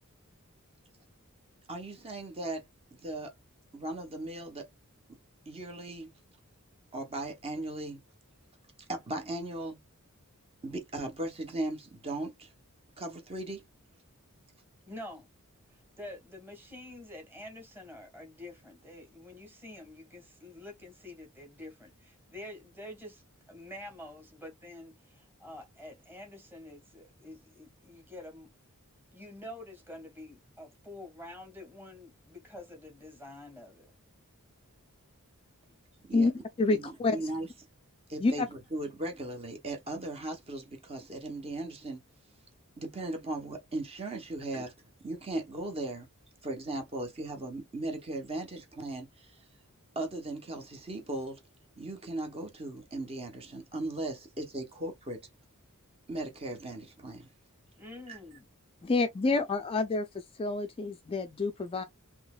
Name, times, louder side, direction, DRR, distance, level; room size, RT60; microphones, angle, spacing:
voice 1, 1.7-2.7 3.0-3.3 3.7-4.7 5.5-6.1 6.9-8.0 8.9-9.8 10.6-12.5 13.0-13.6 36.1-36.3 36.7-37.5 38.1-42.0 42.8-44.7 45.0-46.1 46.4-49.5 50.0-51.4 51.8-55.2 56.1-57.3 58.1-58.2, right 2 dB, 25° right, 0.7 m, -37 dB
voice 2, 14.9-15.3 15.7-28.5 29.1-33.9 44.5-44.7 57.8-58.5 59.3-59.4, left 1 dB, 10° right, 1.4 m, -47 dB
voice 3, 36.6-37.3 38.2-38.5 58.8-61.8, left 3 dB, 25° left, 0.3 m, -28 dB
3.9 x 2.8 x 2.2 m
head